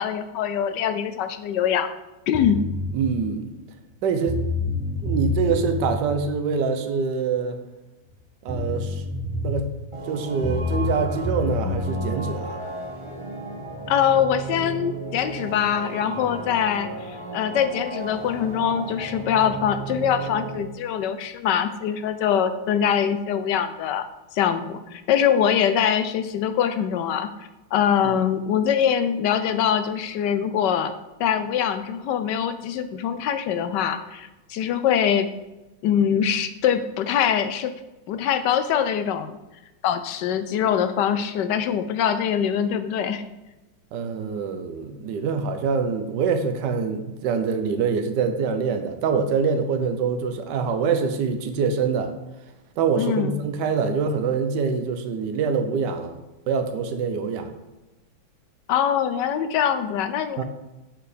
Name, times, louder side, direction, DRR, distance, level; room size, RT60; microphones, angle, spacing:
voice 1, 0.0-1.9 2.3-2.6 13.9-24.0 24.3-30.9 31.2-35.3 35.8-37.7 38.1-39.4 39.8-43.2 53.0-53.4 58.7-60.4, left 8 dB, 70° left, 10 dB, 1.1 m, -23 dB
sound 1, 2.3-2.9 3.9-4.0 4.3-6.0 8.1-8.2 8.5-9.7 10.4-12.1, left 2 dB, ahead, 1.3 m, -27 dB
voice 2, 2.9-3.5 4.0-4.4 5.0-7.6 8.4-9.1 9.4-9.7 10.1-12.6 43.9-52.1 52.8-56.2 56.5-57.5 60.4-60.5, right 5 dB, 65° right, 7 dB, 1.4 m, -25 dB
sound 2, 9.9-20.6, right 2 dB, 20° right, 1.0 m, -35 dB
11.0 x 4.8 x 5.0 m, 1.0 s
omnidirectional pair, 2.1 m